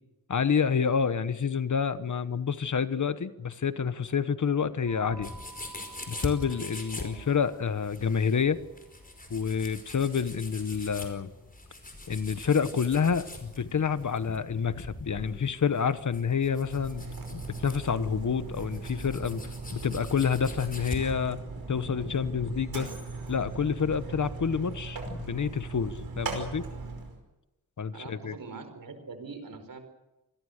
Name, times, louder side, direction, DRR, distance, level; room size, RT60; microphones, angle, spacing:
voice 1, 0.3-5.3 6.1-8.6 9.3-11.3 12.1-19.4 19.7-21.4 21.7-22.9 23.3-26.7 27.8-28.3, left 6 dB, 55° left, 13 dB, 1.2 m, -28 dB
sound 1, 4.9-15.4, right 1 dB, 5° left, 5.9 m, -50 dB
sound 2, 5.2-21.1, left 2 dB, 25° left, 5.0 m, -43 dB
Mechanisms, 16.4-27.2, right 3 dB, 90° right, 5.3 m, -39 dB
voice 2, 27.9-29.8, right 4 dB, 70° right, 8 dB, 4.6 m, -43 dB
27.0 x 21.0 x 6.6 m, 0.99 s
wide cardioid pair, 120°, 35 cm